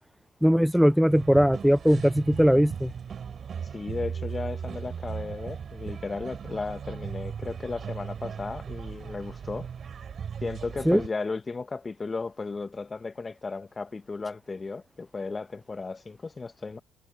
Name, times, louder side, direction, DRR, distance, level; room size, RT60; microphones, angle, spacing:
voice 1, 0.4-2.9 10.9-11.0, equal, ahead, 0.4 m, -20 dB
sound 1, 1.1-11.1, right 7 dB, 50° right, 4.1 m, -37 dB
voice 2, 3.7-9.7 10.4-16.8, left 4 dB, 30° left, 1.4 m, -35 dB
supercardioid pair, 60°, 0 cm